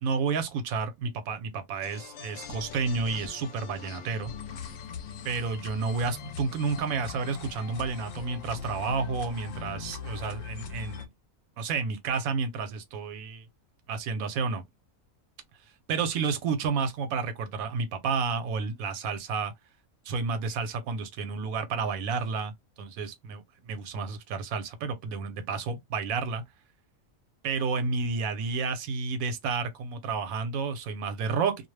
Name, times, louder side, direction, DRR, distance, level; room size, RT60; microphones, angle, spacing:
voice 1, 0.0-4.3 5.2-11.1 11.6-13.5 13.9-14.6 15.9-19.5 20.1-22.5 22.8-26.4 27.4-31.7, right 5 dB, 80° right, 1.1 m, -31 dB
sound 1, 1.8-11.1, left 6 dB, 70° left, 0.9 m, -41 dB
2.5 x 2.0 x 3.1 m
omnidirectional pair, 1.5 m